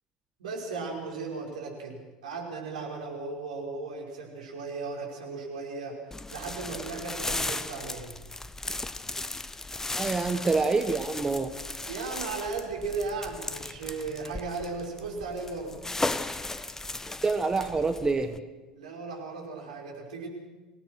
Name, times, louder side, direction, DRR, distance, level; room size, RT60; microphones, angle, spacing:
voice 1, 0.4-6.0 6.3-8.1 11.9-15.8 18.7-20.3, right 4 dB, 70° right, -1 dB, 5.6 m, -36 dB
sound 1, 6.1-18.4, left 2 dB, 10° left, 1.0 m, -36 dB
voice 2, 9.9-11.5 17.2-18.4, right 3 dB, 15° right, 9 dB, 1.3 m, -26 dB
25.0 x 18.0 x 6.2 m, 1.2 s
figure-of-eight pair, 75°, 4 cm